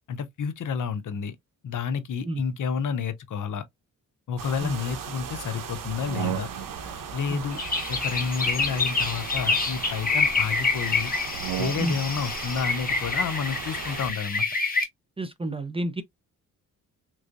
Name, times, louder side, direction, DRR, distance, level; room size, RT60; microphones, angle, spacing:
voice 1, 0.1-1.3 1.6-3.6 4.3-6.5 7.1-7.6 7.9-11.1 11.6-14.5, left 6 dB, 65° left, 0.8 m, -30 dB
sound 1, 4.4-14.1, right 6 dB, 75° right, 1.0 m, -38 dB
sound 2, 5.9-6.9 8.2-9.9 11.2-12.2, right 14 dB, 90° right, 0.5 m, -36 dB
sound 3, 7.5-14.8, left 4 dB, 25° left, 1.1 m, -27 dB
voice 2, 15.2-16.0, right 1 dB, 15° right, 0.5 m, -30 dB
3.7 x 3.2 x 2.5 m
cardioid pair, 95°, 33 cm